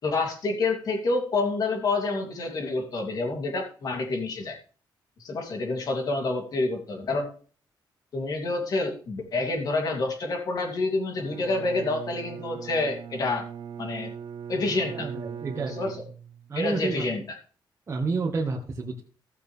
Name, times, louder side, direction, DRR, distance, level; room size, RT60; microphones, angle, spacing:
voice 1, 0.0-4.6 5.2-7.3 8.1-13.5 13.8-14.1 14.5-15.1 15.7-16.0 16.5-17.2, left 3 dB, 50° left, 2 dB, 2.8 m, -28 dB
Bowed string instrument, 11.1-16.6, right 8 dB, 75° right, 0.7 m, -40 dB
voice 2, 14.9-15.8 16.5-17.0 17.9-19.0, right 4 dB, 35° right, -3 dB, 1.7 m, -29 dB
16.5 x 6.9 x 3.4 m, 0.40 s
cardioid pair, 140°, 8 cm